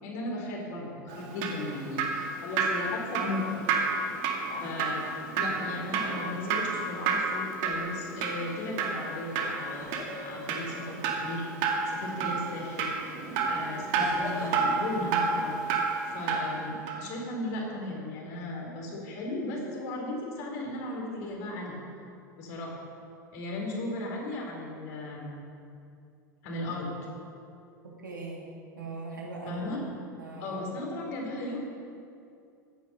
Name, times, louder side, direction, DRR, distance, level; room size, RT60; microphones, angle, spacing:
voice 1, 0.0-3.6 4.6-5.0 5.4-11.4 11.9-12.9 13.5-15.5 16.1-21.8 22.4-22.7 23.3-25.4 26.4-26.9 29.5-29.8 30.4-31.6, left 2 dB, 55° left, -1 dB, 4.2 m, -36 dB
Drip, 1.1-16.6 16.9-17.0, right 4 dB, 50° right, 2.0 m, -30 dB
sound 1, 7.6-7.9 8.3-10.8 12.6-12.8 14.0-14.6, left 2 dB, 30° left, 2.6 m, -44 dB
voice 2, 27.8-28.4 28.7-29.6 30.2-30.6, right 3 dB, 85° right, -3 dB, 3.1 m, -40 dB
15.5 x 10.0 x 5.6 m, 2.5 s
figure-of-eight pair, 80°, 10 cm